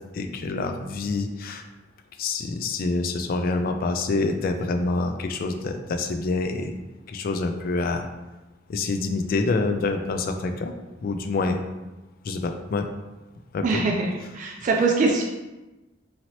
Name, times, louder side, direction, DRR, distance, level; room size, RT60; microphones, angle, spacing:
voice 1, 0.1-1.6 2.2-6.7 7.1-8.1 8.7-10.8 11.0-11.6 12.2-12.9 13.5-13.8, left 3 dB, 50° left, 6 dB, 0.3 m, -26 dB
voice 2, 13.6-14.1 14.3-15.2, right 3 dB, 45° right, 1 dB, 0.3 m, -22 dB
2.8 x 2.8 x 3.0 m, 1.1 s
head